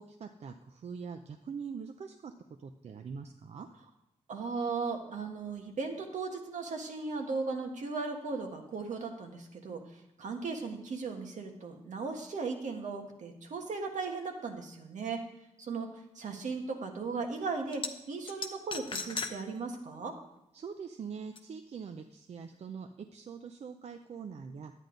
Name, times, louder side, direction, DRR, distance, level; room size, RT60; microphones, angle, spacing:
voice 1, 0.0-2.3 2.6-3.7 20.5-24.7, right 6 dB, 60° right, 6 dB, 0.5 m, -43 dB
voice 2, 4.3-15.2 15.6-15.9 16.1-17.8 18.1-20.1, right 4 dB, 80° right, 3 dB, 1.5 m, -37 dB
sound 1, 17.7-17.9 18.3-19.3 19.7-19.8 21.4-21.5, left 4 dB, 45° left, 0.8 m, -36 dB
11.0 x 9.2 x 3.9 m, 0.89 s
wide cardioid pair, 130°, 12 cm